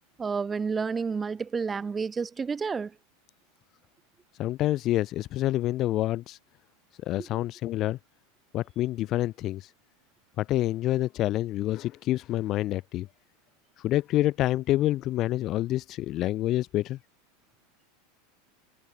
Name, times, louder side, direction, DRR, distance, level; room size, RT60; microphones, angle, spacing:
voice 1, 0.2-2.9 7.2-7.4, right 5 dB, 15° right, 3.5 m, -30 dB
voice 2, 4.4-6.4 7.0-8.0 8.5-9.7 10.4-13.1 13.8-17.0, left 15 dB, 35° left, 1.3 m, -27 dB
supercardioid pair, 150°, 0 cm